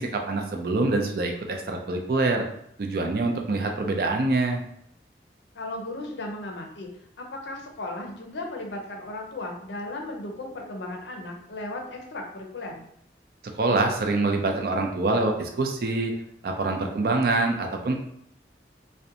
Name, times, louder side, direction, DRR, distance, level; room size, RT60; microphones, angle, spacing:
voice 1, 0.0-2.4 2.8-4.6 13.6-16.1 16.4-18.0, right 2 dB, 55° right, 3 dB, 0.4 m, -25 dB
voice 2, 5.5-6.9 7.2-12.8, left 2 dB, 80° left, 1 dB, 0.5 m, -36 dB
2.5 x 2.1 x 2.7 m, 0.71 s
head